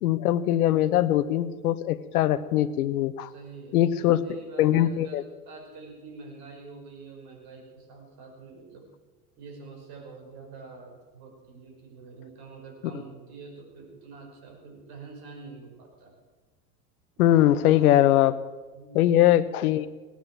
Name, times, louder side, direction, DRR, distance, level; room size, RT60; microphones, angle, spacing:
voice 1, 0.0-3.3 3.7-4.2 4.6-5.2 17.2-18.4 18.9-19.9, left 13 dB, 75° left, 15 dB, 1.1 m, -21 dB
voice 2, 3.2-8.9 9.4-16.1 18.7-19.0, right 4 dB, 55° right, 2 dB, 5.7 m, -46 dB
18.0 x 10.0 x 7.6 m, 1.3 s
hypercardioid pair, 85°, 45 cm